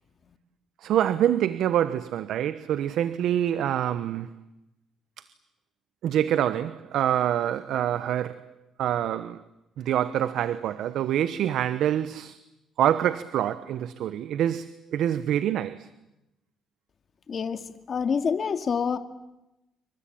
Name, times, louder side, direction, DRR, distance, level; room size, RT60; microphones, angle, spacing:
voice 1, 0.8-4.3 6.0-8.5 8.8-9.4 9.8-12.4 12.8-15.9, right 10 dB, 75° right, 1.0 m, -26 dB
voice 2, 17.3-19.0, left 6 dB, 45° left, 2.2 m, -27 dB
27.5 x 24.0 x 8.7 m
cardioid pair, 90°, 0 cm